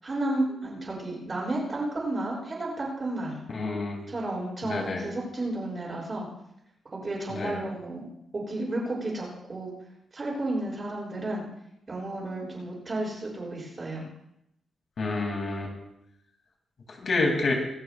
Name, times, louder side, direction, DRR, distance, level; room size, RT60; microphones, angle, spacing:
voice 1, 0.0-3.4 4.1-6.3 6.9-8.1 8.3-9.7 10.1-11.4 11.9-14.1, right 2 dB, 25° right, -4 dB, 7.4 m, -32 dB
voice 2, 3.5-4.0 4.6-5.0 7.3-7.6 15.0-15.7 16.9-17.5, left 3 dB, 45° left, 0 dB, 2.8 m, -28 dB
26.0 x 13.5 x 2.5 m, 0.80 s
wide cardioid pair, 160°, 0 cm